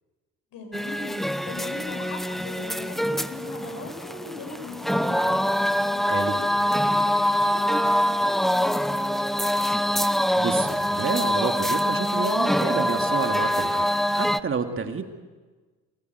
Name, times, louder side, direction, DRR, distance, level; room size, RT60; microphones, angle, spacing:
voice 1, 0.5-5.4 5.8-9.3 14.7-15.0, left 4 dB, 70° left, 4 dB, 7.3 m, -40 dB
sound 1, 0.7-14.4, equal, ahead, 0.7 m, -24 dB
voice 2, 6.0-6.4 10.4-15.0, right 5 dB, 35° right, 5 dB, 2.2 m, -29 dB
24.5 x 19.5 x 8.1 m, 1.3 s
cardioid pair, 90°, 35 cm